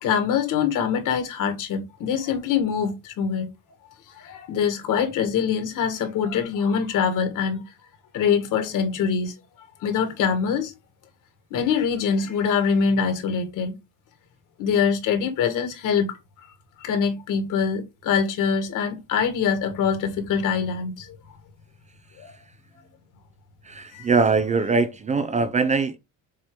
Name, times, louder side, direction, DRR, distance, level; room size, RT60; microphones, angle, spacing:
voice 1, 0.0-3.5 4.1-7.6 8.1-9.3 9.8-10.7 11.5-13.8 14.6-16.2 16.8-21.1 22.2-22.3 23.9-24.1, left 6 dB, 65° left, 2.2 m, -24 dB
voice 2, 23.6-26.0, right 4 dB, 20° right, 0.4 m, -22 dB
7.3 x 2.9 x 5.0 m
cardioid pair, 155°, 34 cm